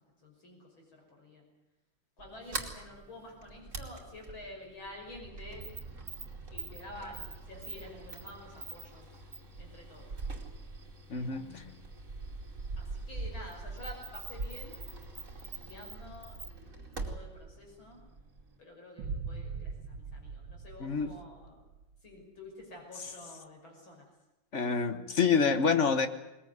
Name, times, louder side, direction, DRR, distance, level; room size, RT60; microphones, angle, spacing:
voice 1, 0.2-1.4 2.2-5.7 6.5-9.1 9.6-10.1 11.1-11.8 12.8-14.8 15.4-18.0 18.6-21.6 22.0-24.1, left 1 dB, 90° left, 1 dB, 6.8 m, -49 dB
Sliding door, 2.2-18.6, right 3 dB, 40° right, 3.0 m, -43 dB
voice 2, 11.1-11.6 20.8-21.2 24.5-26.1, left 5 dB, 40° left, 9 dB, 1.3 m, -27 dB
sound 1, 19.0-22.0, right 5 dB, 85° right, 1.8 m, -41 dB
21.0 x 20.5 x 9.5 m, 0.99 s
omnidirectional pair, 2.1 m